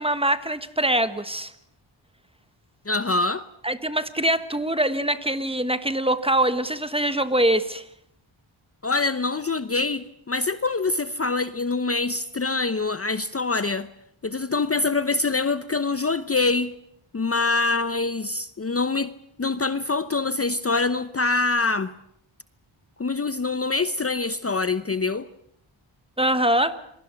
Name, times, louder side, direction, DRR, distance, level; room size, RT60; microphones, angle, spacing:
voice 1, 0.0-1.5 3.6-7.8 26.2-26.8, right 1 dB, 10° right, 1.3 m, -23 dB
voice 2, 2.9-3.4 8.8-13.9 14.2-16.7 17.1-19.1 19.4-21.9 23.0-25.3, left 3 dB, 30° left, 0.8 m, -25 dB
28.0 x 23.0 x 5.9 m
wide cardioid pair, 90°, 49 cm